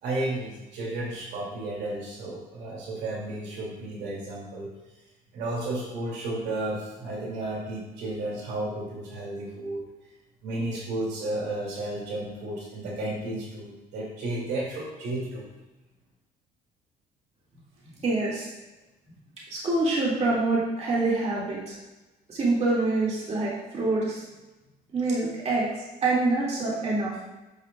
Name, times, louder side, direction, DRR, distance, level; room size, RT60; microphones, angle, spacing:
voice 1, 0.0-4.7 5.3-9.8 10.4-15.5, right 2 dB, 80° right, -4 dB, 2.5 m, -33 dB
voice 2, 18.0-18.5 19.5-21.7 22.3-24.2 24.9-25.7 26.0-27.1, right 2 dB, 40° right, -6 dB, 2.2 m, -25 dB
9.3 x 5.9 x 2.3 m, 1.1 s
cardioid pair, 110°, 17 cm